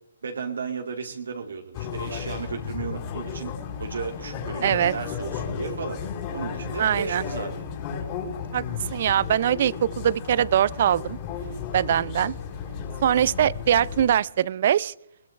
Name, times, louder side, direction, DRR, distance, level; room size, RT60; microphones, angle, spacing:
voice 1, 0.2-3.5 3.8-6.0 6.3-7.7, right 5 dB, 75° right, 2.3 m, -34 dB
sound 1, 1.7-14.1, left 6 dB, 35° left, 4.5 m, -34 dB
voice 2, 4.6-4.9 6.8-7.2 8.5-8.6 8.9-11.2 11.7-12.3 13.0-14.9, right 10 dB, 50° right, 0.5 m, -22 dB
20.5 x 20.0 x 3.3 m
hypercardioid pair, 145°, 0 cm